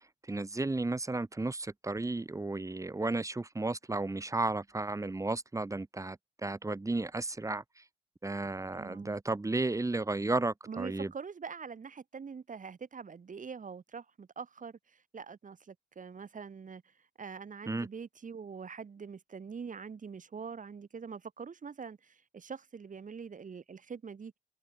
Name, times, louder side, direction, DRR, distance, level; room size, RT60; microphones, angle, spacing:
voice 1, 0.3-6.2 6.4-7.6 8.2-11.1 17.7-17.9, right 2 dB, 15° right, 2.3 m, -33 dB
voice 2, 8.7-9.2 10.7-24.4, right 6 dB, 40° right, 6.9 m, -44 dB
cardioid pair, 90°, 20 cm